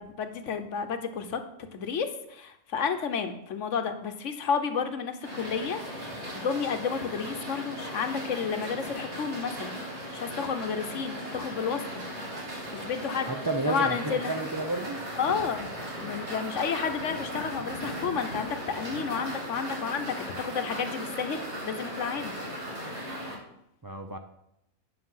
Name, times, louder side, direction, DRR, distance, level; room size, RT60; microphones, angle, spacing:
voice 1, 0.0-1.4 1.7-9.8 10.1-12.0 12.7-13.3 13.7-14.3 15.2-22.3, left 6 dB, 65° left, 8 dB, 1.2 m, -31 dB
sound 1, 5.2-23.3, equal, 55° right, 2.4 m, -37 dB
voice 2, 13.3-15.0 23.8-24.2, right 3 dB, 35° right, 4 dB, 0.3 m, -31 dB
9.9 x 6.1 x 5.6 m, 0.79 s
omnidirectional pair, 1.4 m